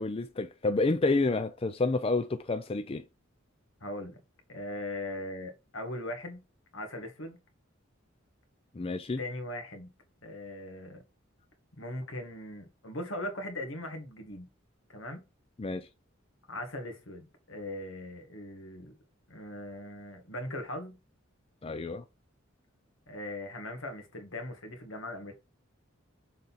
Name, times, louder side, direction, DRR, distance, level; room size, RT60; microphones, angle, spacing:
voice 1, 0.0-3.0 8.8-9.2 15.6-15.9 21.6-22.0, left 3 dB, 30° left, 0.4 m, -29 dB
voice 2, 3.8-4.2 4.5-6.4 6.7-7.4 9.2-9.9 10.2-11.0 11.8-14.5 14.9-15.2 16.5-18.9 19.3-21.0 23.1-25.3, left 1 dB, 80° left, 1.9 m, -39 dB
6.7 x 3.8 x 4.1 m
head